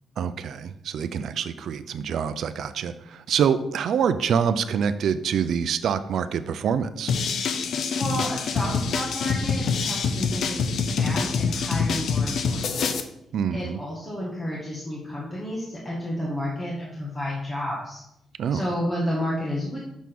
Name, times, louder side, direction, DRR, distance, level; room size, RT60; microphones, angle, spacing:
voice 1, 0.2-7.1 13.3-13.8 18.4-18.7, right 7 dB, 65° right, 13 dB, 0.4 m, -26 dB
sound 1, 7.1-13.0, left 5 dB, 60° left, 0.6 m, -25 dB
voice 2, 8.0-13.1 13.5-18.0 18.5-19.8, equal, 20° left, -5 dB, 1.2 m, -31 dB
6.2 x 3.6 x 5.9 m, 0.82 s
cardioid pair, 150°, 0 cm